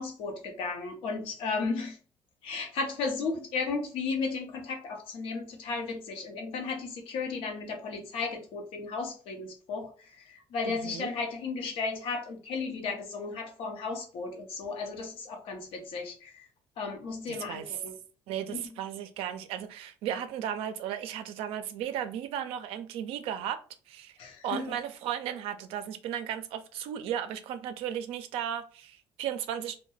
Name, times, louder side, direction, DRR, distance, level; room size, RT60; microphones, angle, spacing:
voice 1, 0.0-2.0 2.4-16.5 16.8-18.0 18.5-18.7 24.2-24.8, left 4 dB, 75° left, 0.7 m, -34 dB
voice 2, 10.6-11.1 17.3-17.8 18.3-23.6 23.9-24.1 24.4-29.8, right 10 dB, 75° right, 0.4 m, -35 dB
2.2 x 2.1 x 3.1 m
supercardioid pair, 80°, 10 cm